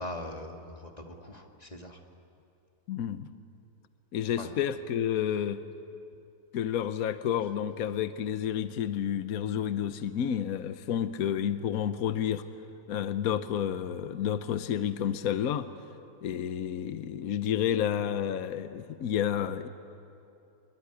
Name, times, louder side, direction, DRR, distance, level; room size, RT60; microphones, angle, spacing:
voice 1, 0.0-2.0 4.4-4.5, left 1 dB, 25° left, 2 dB, 2.0 m, -41 dB
voice 2, 2.9-3.3 4.1-5.6 6.5-12.4 12.9-15.7 16.2-19.7, left 9 dB, 70° left, 11 dB, 1.3 m, -30 dB
26.5 x 22.5 x 9.8 m, 2.7 s
omnidirectional pair, 1.6 m